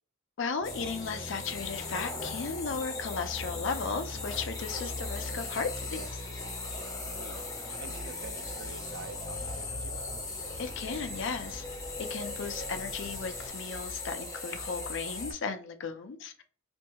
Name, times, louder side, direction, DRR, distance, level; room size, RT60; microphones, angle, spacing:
voice 1, 0.4-6.2 10.6-11.6 12.0-16.4, left 5 dB, 65° left, 0.4 m, -35 dB
sound 1, 0.6-13.5, left 1 dB, 50° left, 0.8 m, -44 dB
sound 2, 0.6-15.3, left 3 dB, 20° left, 0.6 m, -39 dB
voice 2, 6.8-10.4, right 5 dB, 50° right, 0.3 m, -49 dB
2.6 x 2.3 x 2.8 m
head